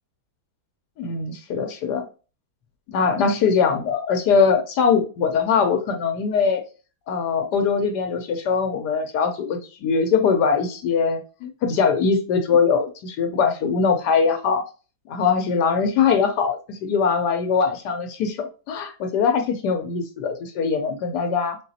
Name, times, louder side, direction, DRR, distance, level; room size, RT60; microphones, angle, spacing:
voice 1, 1.0-2.0 2.9-6.6 7.1-14.6 15.1-21.6, left 5 dB, 85° left, 7 dB, 1.2 m, -22 dB
3.9 x 3.8 x 2.7 m, 0.34 s
omnidirectional pair, 1.7 m